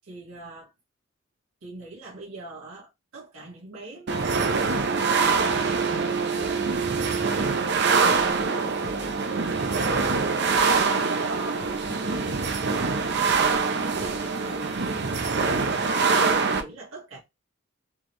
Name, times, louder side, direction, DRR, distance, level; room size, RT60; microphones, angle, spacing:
voice 1, 0.0-0.7 1.6-6.7 7.0-12.4 12.7-15.4 15.7-17.2, right 2 dB, 90° right, 2.1 m, -42 dB
sound 1, 4.1-16.6, right 4 dB, 55° right, 0.6 m, -24 dB
Scratching (performance technique), 8.1-8.5 8.8-9.1 9.8-10.1 10.5-10.8 11.6-11.9 12.3-12.6 13.3-13.6 14.0-14.3, left 2 dB, 85° left, 0.9 m, -45 dB
4.5 x 3.2 x 3.0 m
head